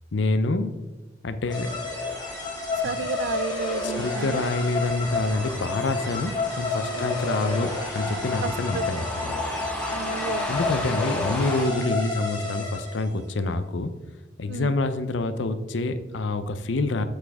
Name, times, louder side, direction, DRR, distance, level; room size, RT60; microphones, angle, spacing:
voice 1, 0.1-0.7 1.2-1.7 2.8-2.9 3.8-9.4 10.5-13.9 14.4-17.0, left 2 dB, 70° left, 11 dB, 0.6 m, -27 dB
sound 1, 1.5-13.2, left 3 dB, 25° left, 2.0 m, -30 dB
sound 2, 1.5-11.7, left 1 dB, 5° left, 0.9 m, -36 dB
voice 2, 2.8-4.4 6.9-7.1 8.4-8.9 9.8-10.5 10.8-10.9 14.5-14.7, right 7 dB, 70° right, 18 dB, 0.3 m, -33 dB
Wind instrument woodwind instrument, 5.7-9.6, left 1 dB, 55° left, 2.7 m, -44 dB
7.5 x 6.2 x 3.5 m, 1.1 s
head